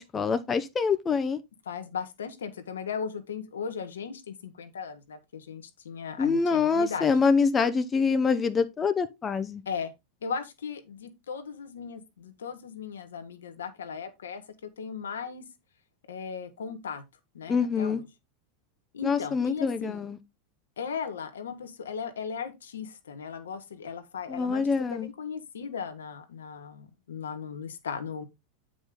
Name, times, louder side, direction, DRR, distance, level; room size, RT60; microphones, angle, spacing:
voice 1, 0.0-1.4 6.2-9.6 17.5-18.0 19.0-20.2 24.3-25.1, left 5 dB, 25° left, 0.7 m, -25 dB
voice 2, 1.7-7.1 9.6-9.9 10.2-15.4 16.1-17.0 17.3-18.0 18.9-20.1 20.8-28.2, left 6 dB, 75° left, 1.1 m, -37 dB
8.6 x 5.1 x 3.7 m
figure-of-eight pair, 85°, 0 cm